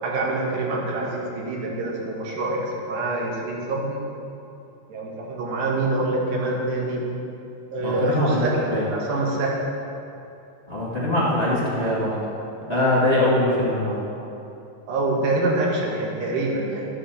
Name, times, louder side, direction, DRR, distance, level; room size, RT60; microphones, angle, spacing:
voice 1, 0.0-4.0 4.9-7.0 7.7-9.5 14.9-16.9, right 2 dB, 80° right, -3 dB, 4.1 m, -25 dB
voice 2, 7.8-8.4 8.7-8.8 10.7-12.2 12.7-14.0, left 1 dB, 35° left, -7 dB, 1.0 m, -22 dB
12.5 x 9.2 x 6.8 m, 2.8 s
omnidirectional pair, 4.7 m